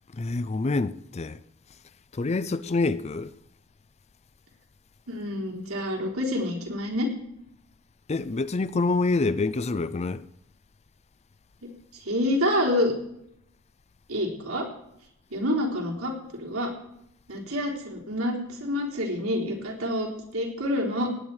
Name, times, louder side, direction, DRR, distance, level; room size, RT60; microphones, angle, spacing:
voice 1, 0.1-1.4 2.1-3.3 8.1-10.2, left 3 dB, 30° left, 0.4 m, -26 dB
voice 2, 5.1-7.1 12.0-12.9 14.1-14.6 15.3-16.1 16.4-16.7 17.3-21.1, left 1 dB, 80° right, 3.7 m, -27 dB
18.0 x 9.3 x 4.8 m
head